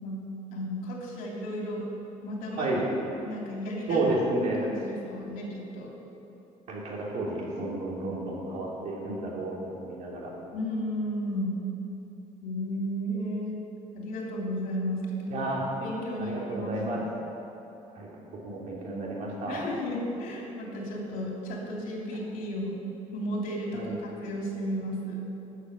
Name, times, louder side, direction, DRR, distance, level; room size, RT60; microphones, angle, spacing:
voice 1, 0.0-1.9 2.2-2.7 3.2-4.0 4.6-5.9 10.5-11.6 12.4-13.6 13.9-15.4 15.7-17.1 19.5-22.8 23.1-25.2, equal, 90° left, -2 dB, 3.0 m, -33 dB
voice 2, 3.9-4.7 6.7-10.3 15.3-15.6 16.2-17.0 17.9-18.1 18.4-19.6 23.7-23.9, right 2 dB, 60° right, -4 dB, 3.2 m, -31 dB
13.5 x 6.6 x 8.1 m, 3.0 s
cardioid pair, 165°, 14 cm